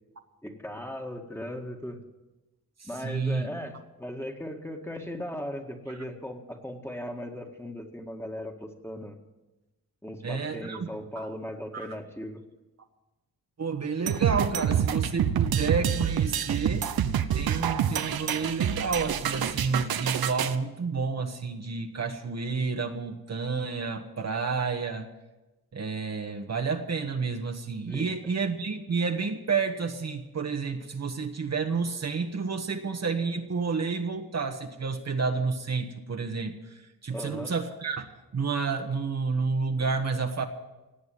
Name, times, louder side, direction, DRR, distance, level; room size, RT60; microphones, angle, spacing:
voice 1, 0.4-2.0 2.8-9.2 10.0-12.4 27.9-28.1 37.1-37.5, equal, 5° left, 3 dB, 2.0 m, -38 dB
voice 2, 2.8-3.5 10.2-10.9 11.1-11.3 11.7-11.9 13.6-16.9 17.3-25.1 25.7-38.1 38.3-40.4, right 4 dB, 45° right, 4 dB, 1.5 m, -30 dB
sound 1, 14.1-20.6, right 9 dB, 80° right, 1.0 m, -27 dB
18.0 x 8.0 x 9.4 m, 1.1 s
cardioid pair, 80°, 36 cm